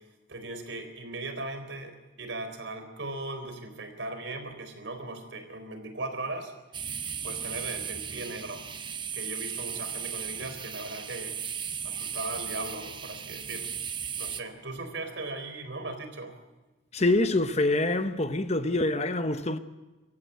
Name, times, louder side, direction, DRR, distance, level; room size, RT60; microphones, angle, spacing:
voice 1, 0.3-6.5 7.2-8.7 9.1-11.4 11.8-13.7 14.2-16.3, right 2 dB, 70° right, 4.1 m, -38 dB
sound 1, 6.7-14.4, right 7 dB, 25° right, 0.9 m, -36 dB
voice 2, 16.9-19.6, left 2 dB, 35° left, 0.9 m, -25 dB
26.0 x 14.5 x 9.3 m
head